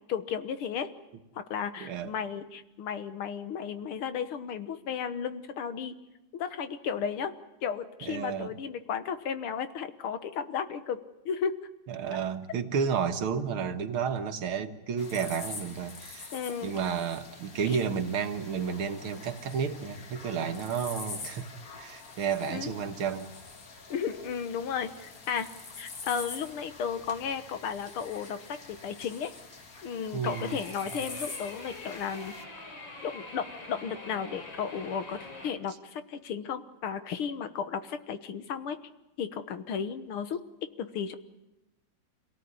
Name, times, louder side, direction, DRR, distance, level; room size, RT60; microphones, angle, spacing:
voice 1, 0.1-0.9 1.3-6.0 6.3-7.3 7.6-11.6 12.1-12.2 16.3-16.8 17.6-17.8 22.5-22.7 23.9-25.5 25.8-29.3 29.8-32.4 33.0-38.8 39.2-40.4 40.8-41.2, left 7 dB, 85° left, 10 dB, 2.2 m, -34 dB
voice 2, 1.8-2.1 8.0-8.5 11.9-16.3 16.6-21.5 21.8-23.3 30.1-30.6, right 7 dB, 85° right, 7 dB, 2.3 m, -31 dB
sound 1, 15.0-32.4, left 4 dB, 45° left, 2.1 m, -45 dB
sound 2, 30.3-35.5, left 2 dB, 65° left, 4.3 m, -44 dB
26.5 x 18.0 x 9.7 m, 0.99 s
omnidirectional pair, 2.3 m